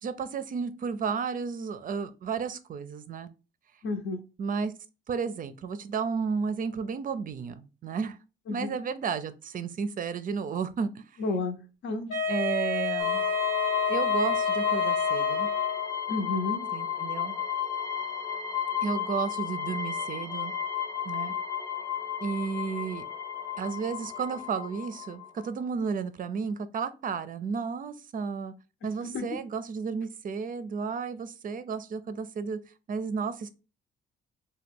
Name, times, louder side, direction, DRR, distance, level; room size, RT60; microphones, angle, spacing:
voice 1, 0.0-3.3 4.4-4.7 5.1-8.2 8.5-11.0 12.3-13.3 13.9-15.5 16.7-17.4 18.8-20.5 21.0-21.3 22.2-23.0 23.5-28.5 28.8-32.6 32.9-33.5, right 5 dB, 45° right, 0.4 m, -32 dB
voice 2, 3.8-4.2 8.5-8.7 11.2-11.6 11.8-12.1 16.1-16.6 29.0-29.4, left 3 dB, 65° left, 0.7 m, -31 dB
Wind instrument woodwind instrument, 12.1-16.0, left 4 dB, 90° left, 1.2 m, -29 dB
sound 1, 13.0-25.5, left 9 dB, 15° left, 0.5 m, -32 dB
2.8 x 2.2 x 3.5 m
cardioid pair, 90°, 20 cm